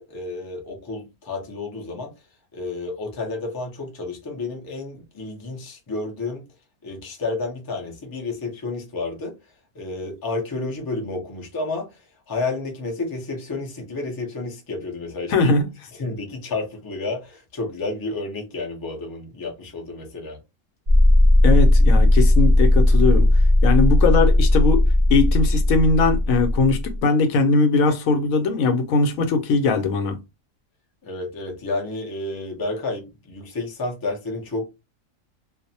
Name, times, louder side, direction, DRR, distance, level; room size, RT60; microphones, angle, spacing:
voice 1, 0.0-2.1 2.5-6.4 6.8-9.3 9.7-11.9 12.3-15.5 16.0-20.4 31.0-34.7, left 3 dB, 35° left, 0.3 m, -30 dB
voice 2, 15.3-15.6 21.4-23.3 23.6-30.2, left 3 dB, 80° left, 1.0 m, -20 dB
sound 1, 20.9-27.0, left 1 dB, 65° right, 0.4 m, -16 dB
2.5 x 2.0 x 2.7 m
omnidirectional pair, 1.4 m